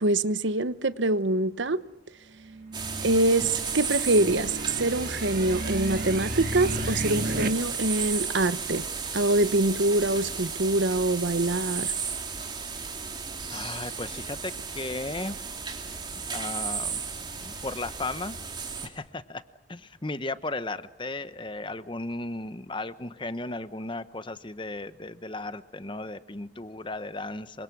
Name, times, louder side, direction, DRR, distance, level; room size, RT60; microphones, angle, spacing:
voice 1, 0.0-1.8 3.0-8.8 9.1-11.9, right 2 dB, 70° right, 1.1 m, -25 dB
sound 1, 2.5-7.5, right 1 dB, 45° right, 2.1 m, -34 dB
sound 2, 2.7-18.9, right 5 dB, 25° right, 3.2 m, -34 dB
voice 2, 13.5-15.4 16.3-17.0 17.4-18.4 18.8-19.4 19.7-27.6, left 2 dB, 25° left, 0.9 m, -35 dB
28.0 x 25.5 x 6.1 m
head